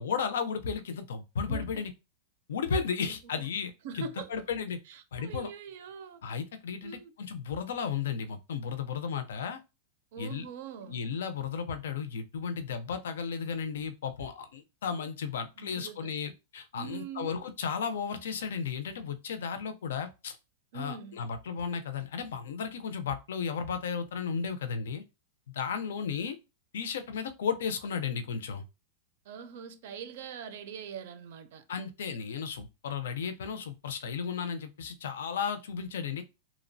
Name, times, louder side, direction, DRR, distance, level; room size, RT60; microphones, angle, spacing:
voice 1, 0.0-1.9 2.5-3.7 4.0-4.8 5.1-5.5 6.2-9.6 10.2-10.5 10.9-20.4 20.7-25.0 25.5-26.4 26.7-28.6 31.7-36.2, left 6 dB, 90° left, 0.4 m, -34 dB
voice 2, 1.5-1.8 3.0-3.5 3.8-4.3 4.9-6.2 6.8-7.1 10.1-11.0 15.6-16.1 16.7-17.5 20.7-21.2 29.3-31.6, right 7 dB, 60° right, 0.4 m, -43 dB
2.8 x 2.0 x 2.5 m
supercardioid pair, 160°, 0 cm